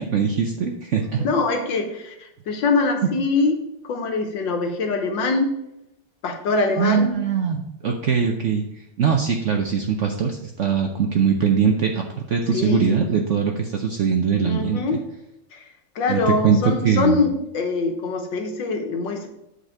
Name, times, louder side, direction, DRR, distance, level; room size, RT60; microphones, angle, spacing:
voice 1, 0.0-1.2 6.8-8.6 9.0-14.8 16.1-16.6 16.8-17.2, right 6 dB, 65° right, 3 dB, 0.7 m, -21 dB
voice 2, 1.2-3.5 3.8-5.5 6.2-7.1 12.5-13.0 14.4-15.0 15.5-15.6 15.9-19.3, left 3 dB, 80° left, 4 dB, 1.8 m, -23 dB
8.1 x 4.1 x 5.8 m, 0.83 s
omnidirectional pair, 2.0 m